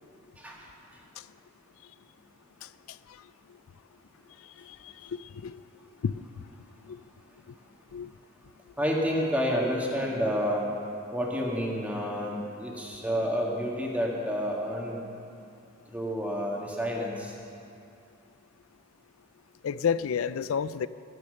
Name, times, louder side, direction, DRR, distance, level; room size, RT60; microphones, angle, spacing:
voice 1, 0.4-0.7 8.8-10.7 11.1-15.0 15.9-17.4, equal, 5° right, 1.9 m, -29 dB
voice 2, 2.6-3.2 4.6-5.6 6.0-6.1 6.8-7.0 7.9-8.1 19.6-20.9, left 7 dB, 85° left, 0.4 m, -32 dB
15.0 x 9.8 x 6.6 m
head